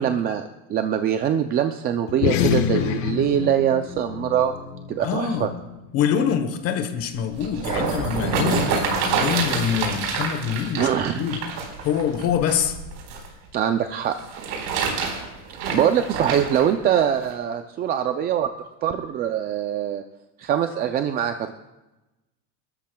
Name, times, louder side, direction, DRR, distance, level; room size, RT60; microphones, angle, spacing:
voice 1, 0.0-4.5 4.9-5.5 8.5-8.7 9.3-9.5 10.8-11.2 13.5-14.2 15.7-18.5 18.8-20.0 20.4-21.5, right 9 dB, 25° right, 7 dB, 0.4 m, -23 dB
sound 1, 2.1-6.9, left 10 dB, 85° left, 1.1 m, -28 dB
voice 2, 5.0-5.5 5.9-11.4 11.8-12.8, left 8 dB, 45° left, 8 dB, 1.1 m, -25 dB
sound 2, 7.2-13.3 14.1-16.7 17.3-17.4, right 5 dB, 85° right, 4.3 m, -27 dB
29.5 x 13.0 x 2.3 m, 1.0 s
cardioid pair, 170°, 35 cm